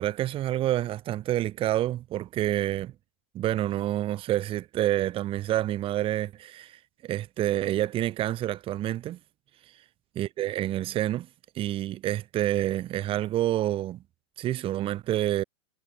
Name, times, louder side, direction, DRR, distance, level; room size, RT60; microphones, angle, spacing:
voice 1, 0.0-2.9 3.3-9.2 10.2-11.3 11.6-14.0 14.4-15.4, right 13 dB, 30° right, 2.4 m, -28 dB
hypercardioid pair, 120°, 18 cm